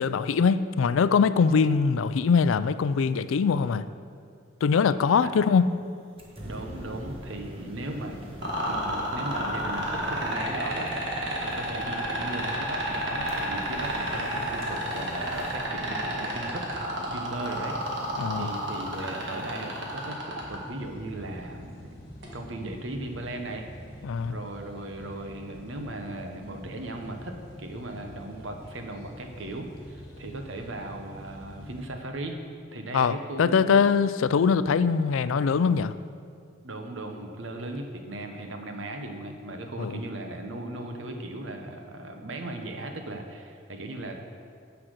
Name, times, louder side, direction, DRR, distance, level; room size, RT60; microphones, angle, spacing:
voice 1, 0.0-3.9 4.6-5.6 18.2-18.5 24.0-24.4 32.9-35.9 39.8-39.9, left 5 dB, 80° left, 14 dB, 0.4 m, -22 dB
sound 1, 6.2-20.1, equal, 30° right, 1.3 m, -44 dB
voice 2, 6.4-8.2 8.7-16.7 16.9-21.9 22.3-23.7 24.3-32.4 32.7-33.9 36.6-44.2, right 1 dB, 70° right, 4 dB, 1.1 m, -37 dB
sound 2, 8.4-20.6 22.2-22.3, right 1 dB, 55° right, 1.7 m, -30 dB
sound 3, 20.4-31.9, equal, 50° left, 1.7 m, -46 dB
10.0 x 5.9 x 6.5 m, 2.2 s
head